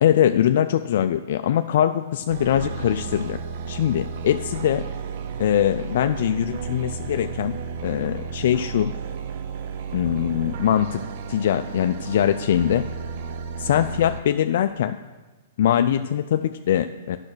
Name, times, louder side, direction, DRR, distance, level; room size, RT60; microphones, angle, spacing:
voice 1, 0.0-3.4 3.7-4.8 5.4-7.6 7.8-8.9 9.9-11.0 11.3-12.8 13.6-14.9 15.6-17.2, left 10 dB, 65° left, 8 dB, 0.3 m, -22 dB
sound 1, 2.3-14.2, right 6 dB, 50° right, 0.6 m, -33 dB
8.7 x 5.7 x 6.2 m, 1.2 s
hypercardioid pair, 145°, 0 cm